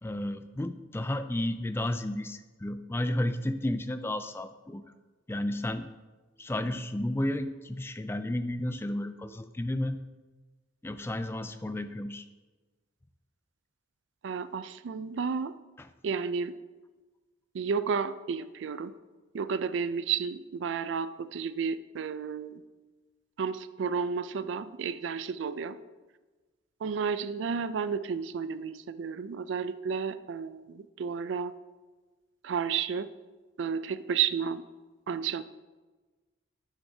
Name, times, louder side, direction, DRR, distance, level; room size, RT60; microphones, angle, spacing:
voice 1, 0.0-4.8 5.3-5.9 6.4-10.0 10.8-12.2 15.8-15.9, left 1 dB, 10° left, 10 dB, 0.3 m, -32 dB
voice 2, 14.2-15.6 16.0-16.6 17.5-18.9 19.3-22.6 23.4-25.8 26.8-31.5 32.4-33.1 33.6-34.6 35.1-35.4, right 6 dB, 70° right, 14 dB, 0.4 m, -32 dB
9.8 x 7.3 x 2.7 m, 1.3 s
head